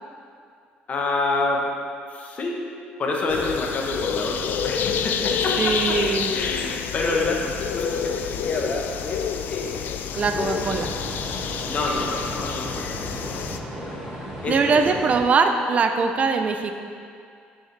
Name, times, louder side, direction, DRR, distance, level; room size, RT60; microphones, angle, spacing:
voice 1, 0.9-1.7 2.1-2.7 3.0-6.0 6.3-9.8 11.7-13.5 13.7-14.0 14.4-14.9, left 2 dB, 40° left, -1 dB, 1.1 m, -28 dB
sound 1, 3.3-13.6, left 7 dB, 60° left, 0.3 m, -28 dB
voice 2, 5.6-6.3 10.2-10.9 14.5-16.7, right 4 dB, 35° right, 6 dB, 0.5 m, -21 dB
sound 2, 10.1-15.2, equal, 15° right, 1.6 m, -35 dB
7.0 x 6.3 x 3.3 m, 2.4 s
cardioid pair, 115°, 4 cm